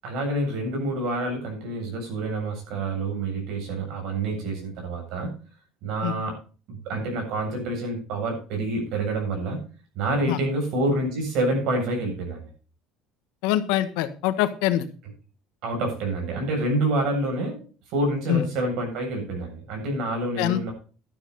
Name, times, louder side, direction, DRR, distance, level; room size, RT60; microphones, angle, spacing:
voice 1, 0.0-5.3 5.8-6.4 6.7-9.6 9.9-12.5 15.6-17.6 17.9-20.7, right 2 dB, 65° right, 2 dB, 7.5 m, -27 dB
voice 2, 13.4-14.9 18.3-18.4 20.4-20.7, left 13 dB, 80° left, 11 dB, 1.3 m, -24 dB
12.0 x 10.5 x 4.2 m, 0.37 s
cardioid pair, 140°, 0 cm